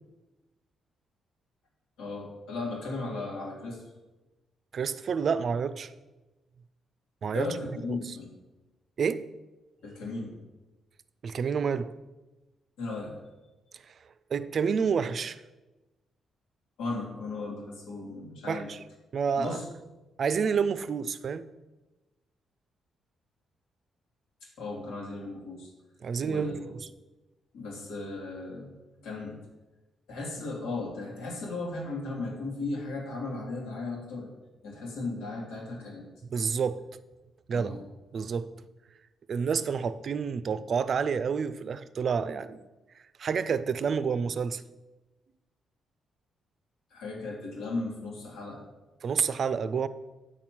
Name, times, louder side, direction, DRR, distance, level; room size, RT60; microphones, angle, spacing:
voice 1, 2.0-3.8 7.3-8.3 9.8-10.4 12.8-13.1 16.8-18.7 19.4-19.7 24.4-25.7 26.2-26.7 27.5-28.8 29.0-29.4 30.1-34.3 34.6-36.1 37.5-37.8 46.9-48.6, left 3 dB, 85° left, 2.4 m, -36 dB
voice 2, 4.7-5.9 7.2-7.6 7.9-8.0 9.0-9.3 11.2-11.9 14.3-15.4 18.5-18.8 19.1-19.6 20.2-21.5 26.0-26.8 36.2-36.8 37.5-37.8 38.1-38.5 39.3-42.6 43.2-44.6 49.0-49.9, right 6 dB, 55° right, 0.5 m, -29 dB
8.8 x 4.4 x 7.5 m
supercardioid pair, 70°, 0 cm